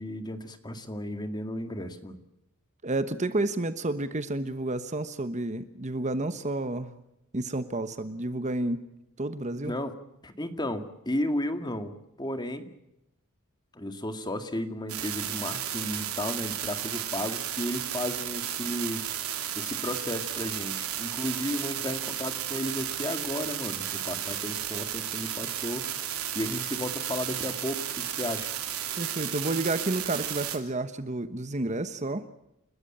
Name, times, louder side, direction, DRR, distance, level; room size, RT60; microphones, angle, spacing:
voice 1, 0.0-2.2 9.6-9.9 10.2-11.9 12.2-12.7 13.7-19.0 19.6-25.9 26.3-28.5, left 1 dB, 20° left, 8 dB, 2.0 m, -33 dB
voice 2, 2.8-6.9 7.3-8.8 9.2-9.7 29.0-32.3, right 2 dB, 35° right, 11 dB, 1.1 m, -30 dB
sound 1, 14.9-30.6, right 11 dB, 90° right, 3.2 m, -33 dB
30.0 x 13.5 x 8.8 m, 0.84 s
head